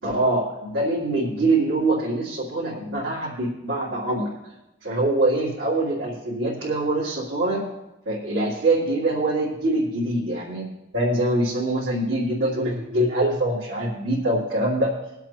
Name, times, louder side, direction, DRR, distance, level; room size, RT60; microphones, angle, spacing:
voice 1, 0.0-4.3 4.8-7.6 8.0-10.6 10.9-14.9, right 2 dB, 80° right, -9 dB, 3.2 m, -24 dB
23.0 x 8.1 x 3.0 m, 0.94 s
head